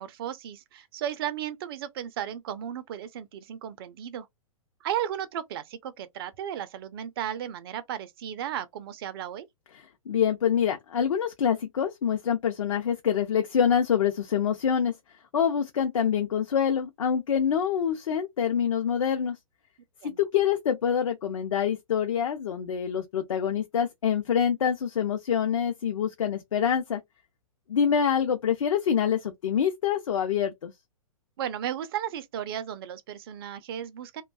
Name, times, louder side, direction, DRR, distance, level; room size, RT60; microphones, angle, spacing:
voice 1, 0.0-4.3 4.8-9.5 20.0-20.2 31.4-34.2, right 10 dB, 45° right, 0.4 m, -34 dB
voice 2, 10.1-14.9 15.3-19.4 20.0-27.0 27.7-30.7, left 8 dB, 65° left, 0.6 m, -26 dB
2.5 x 2.2 x 2.2 m
figure-of-eight pair, 115°, 18 cm